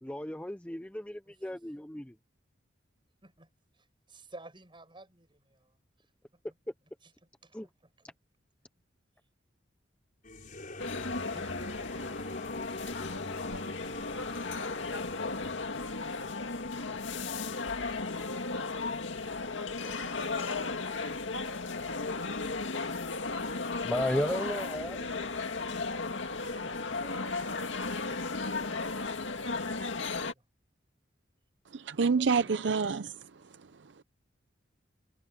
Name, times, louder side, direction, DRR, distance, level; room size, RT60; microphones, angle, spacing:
voice 1, 0.0-2.2 7.5-7.7 23.8-25.1, left 1 dB, 5° left, 0.6 m, -34 dB
voice 2, 1.2-1.6 3.2-6.1 7.0-7.1 7.4-8.2 11.4-11.5 12.7-12.8 14.3-14.7 19.6-21.2 26.4-28.2 30.1-30.4 31.9-32.6, right 2 dB, 25° right, 7.4 m, -56 dB
sound 1, 10.2-15.7, left 2 dB, 45° left, 5.2 m, -43 dB
sound 2, 10.8-30.3, left 3 dB, 90° left, 2.1 m, -35 dB
voice 3, 31.7-34.0, right 5 dB, 70° right, 0.6 m, -29 dB
head